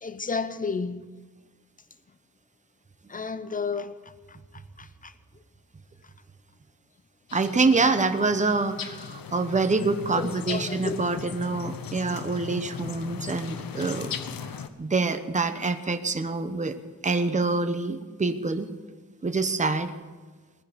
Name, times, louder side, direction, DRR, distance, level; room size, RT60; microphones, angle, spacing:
voice 1, 0.0-1.1 3.1-4.0 4.3-4.4 4.8-5.1 10.1-11.0, left 4 dB, 25° left, 0.7 m, -32 dB
sound 1, 7.3-14.7, left 7 dB, 85° left, 1.0 m, -38 dB
voice 2, 7.3-14.2 14.8-16.8 17.0-18.7 19.2-19.9, right 3 dB, 20° right, 0.9 m, -26 dB
19.5 x 10.0 x 6.9 m
wide cardioid pair, 145°, 34 cm